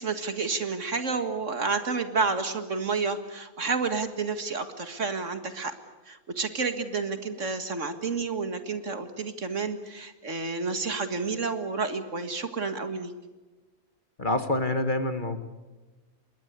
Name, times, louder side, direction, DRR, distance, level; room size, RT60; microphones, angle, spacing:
voice 1, 0.0-5.7 6.1-13.1, right 4 dB, 55° right, 9 dB, 2.1 m, -30 dB
voice 2, 14.2-15.5, left 2 dB, 35° left, 9 dB, 1.7 m, -27 dB
27.5 x 21.5 x 8.2 m, 1.2 s
omnidirectional pair, 1.5 m